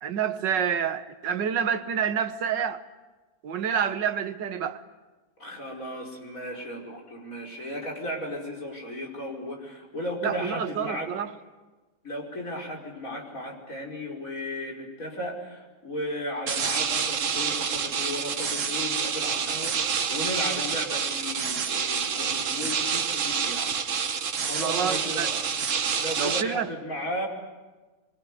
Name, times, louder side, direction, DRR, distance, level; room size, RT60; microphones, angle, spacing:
voice 1, 0.0-2.8 3.4-4.8 10.2-11.3 24.6-25.3 26.2-26.7, right 8 dB, 85° right, 1.9 m, -28 dB
voice 2, 5.4-11.1 12.0-23.7 24.4-25.3 26.0-27.3, left 1 dB, 50° left, 5.7 m, -35 dB
sound 1, 16.5-26.4, right 6 dB, 50° right, 1.3 m, -28 dB
25.0 x 24.0 x 9.9 m
omnidirectional pair, 1.9 m